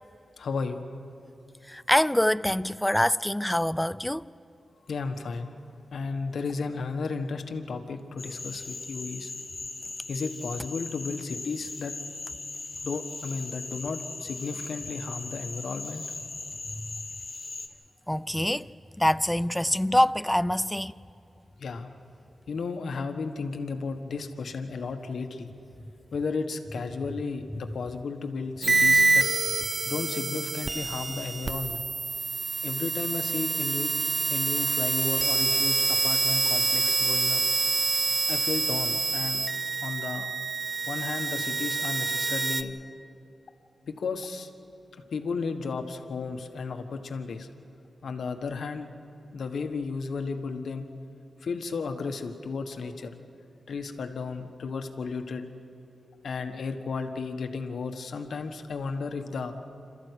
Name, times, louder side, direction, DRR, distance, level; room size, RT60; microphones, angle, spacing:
voice 1, 0.4-0.9 4.9-5.5 5.9-9.3 10.1-12.0 12.8-16.0 21.6-21.9 22.5-25.5 26.1-29.3 29.8-31.8 32.6-34.0 34.3-37.4 38.3-39.4 39.8-40.3 40.9-42.8 43.9-44.5 45.1-47.5 48.0-48.9 49.3-50.8 51.4-53.1 53.7-55.5 56.2-59.6, left 4 dB, 75° left, 1.4 m, -33 dB
voice 2, 1.7-4.3 16.8-16.9 18.1-18.7 19.0-20.9, left 1 dB, 5° left, 0.4 m, -25 dB
Cricket / Frog, 8.2-17.7, left 3 dB, 40° left, 2.4 m, -39 dB
sound 1, 28.6-42.6, right 3 dB, 35° right, 0.9 m, -26 dB
27.5 x 13.5 x 8.3 m
cardioid pair, 70°, 0 cm